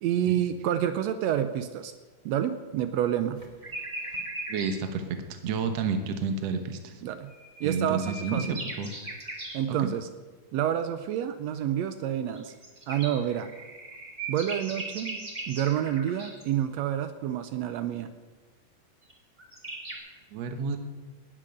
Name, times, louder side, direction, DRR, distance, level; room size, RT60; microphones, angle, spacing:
voice 1, 0.0-1.9 2.2-3.4 7.0-7.3 7.6-8.6 9.5-10.1 10.5-12.5 12.9-13.5 14.3-18.1, right 10 dB, 80° right, 10 dB, 1.5 m, -28 dB
sound 1, 3.4-4.7 7.3-9.6 12.3-16.4 19.1-19.2 19.4-19.9, right 2 dB, 15° right, 1.6 m, -38 dB
voice 2, 4.5-5.0 5.3-7.0 7.6-8.9 9.7-9.8 20.3-20.8, right 5 dB, 60° right, 7 dB, 2.0 m, -30 dB
19.0 x 7.6 x 6.6 m, 1.3 s
omnidirectional pair, 3.7 m